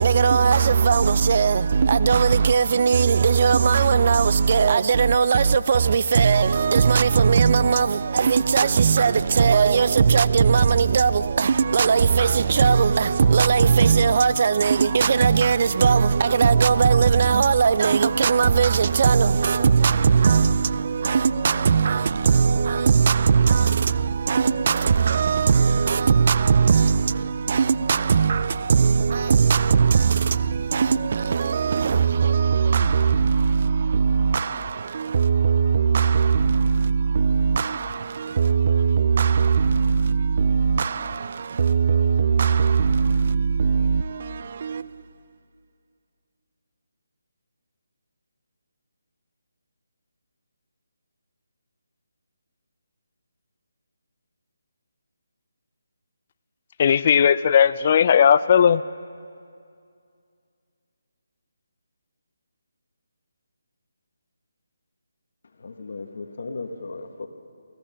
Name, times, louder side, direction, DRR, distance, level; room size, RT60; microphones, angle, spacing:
voice 1, 0.0-45.1, right 6 dB, 45° right, 0.4 m, -19 dB
voice 2, 56.8-58.8, left 8 dB, 40° left, 0.4 m, -17 dB
voice 3, 65.6-67.3, left 3 dB, 60° left, 1.3 m, -35 dB
16.0 x 14.5 x 5.8 m
figure-of-eight pair, 155°, 0 cm